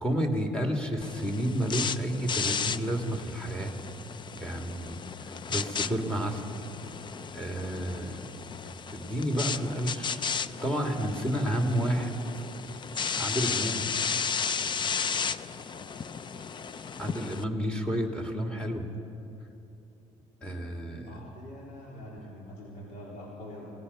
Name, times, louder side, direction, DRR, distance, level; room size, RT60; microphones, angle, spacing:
voice 1, 0.0-3.8 4.3-6.4 7.3-8.2 8.9-10.2 10.6-12.1 13.1-13.9 17.0-18.9 20.4-21.1, right 1 dB, 5° left, 2 dB, 2.5 m, -30 dB
sound 1, 1.0-17.4, left 6 dB, 35° left, 0.6 m, -34 dB
voice 2, 15.7-16.5 21.1-23.7, left 1 dB, 85° left, -4 dB, 3.8 m, -45 dB
27.0 x 18.5 x 5.6 m, 2.8 s
cardioid pair, 110°, 14 cm